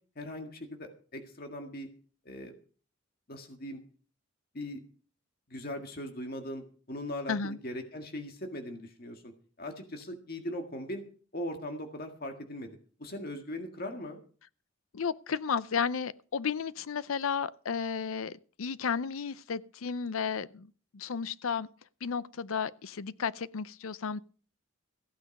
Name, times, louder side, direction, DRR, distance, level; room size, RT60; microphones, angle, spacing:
voice 1, 0.2-1.9 2.3-2.5 3.3-3.8 4.5-4.8 5.5-9.3 9.6-11.0 11.3-14.2, left 1 dB, 45° left, 1.8 m, -40 dB
voice 2, 14.9-21.7 22.0-24.2, left 6 dB, 80° left, 0.6 m, -33 dB
15.5 x 9.2 x 5.3 m
head